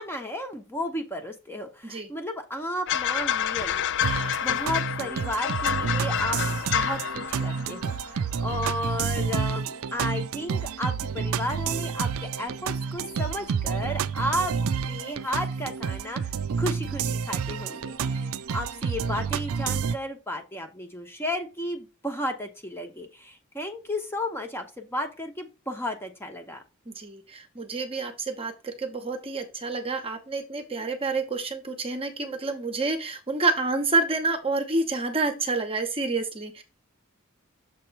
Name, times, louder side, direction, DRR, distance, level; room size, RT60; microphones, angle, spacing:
voice 1, 0.0-3.8 4.1-6.4 6.7-14.5 14.9-16.3 16.6-26.6, left 1 dB, 10° left, 4 dB, 0.9 m, -33 dB
sound 1, 2.9-8.2 8.5-8.8, left 9 dB, 55° left, 0.4 m, -28 dB
sound 2, 4.0-19.9, right 6 dB, 70° right, 0.4 m, -29 dB
voice 2, 26.9-36.6, right 3 dB, 25° right, 6 dB, 0.9 m, -28 dB
6.9 x 3.0 x 5.3 m, 0.28 s
head